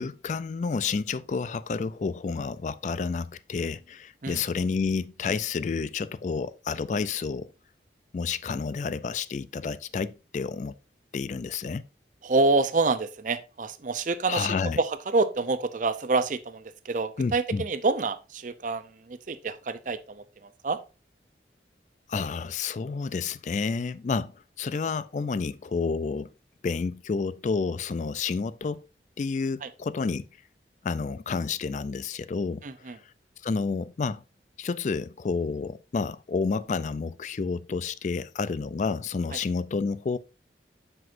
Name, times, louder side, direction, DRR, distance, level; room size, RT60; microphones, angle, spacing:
voice 1, 0.0-7.5 8.1-10.7 11.1-11.8 14.3-14.8 17.2-17.6 22.1-24.3 24.6-26.3 26.6-28.8 29.2-30.3 30.8-32.9 33.4-34.2 34.6-40.2, left 4 dB, 45° left, 0.3 m, -30 dB
voice 2, 12.2-20.8 29.6-29.7 32.6-33.0 39.3-39.4, right 3 dB, 45° right, 0.6 m, -27 dB
7.7 x 6.0 x 2.5 m
head